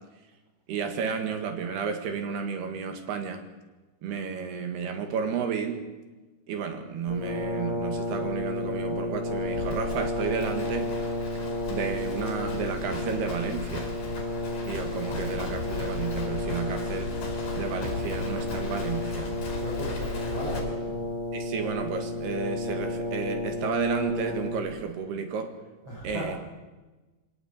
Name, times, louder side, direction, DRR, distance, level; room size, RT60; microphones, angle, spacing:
voice 1, 0.7-3.4 4.0-5.9 6.5-10.9 11.7-13.9 14.7-17.1 17.6-19.4 21.3-25.5 26.0-26.4, right 6 dB, 70° right, 7 dB, 3.8 m, -32 dB
Brass instrument, 7.1-24.9, left 2 dB, 25° left, 2.1 m, -32 dB
Livestock farm animals working animals, 9.3-20.6, left 4 dB, 50° left, 6.4 m, -37 dB
voice 2, 19.6-21.0 25.8-26.2, right 1 dB, 35° right, -4 dB, 6.7 m, -36 dB
23.0 x 18.0 x 8.7 m, 1.2 s
omnidirectional pair, 4.9 m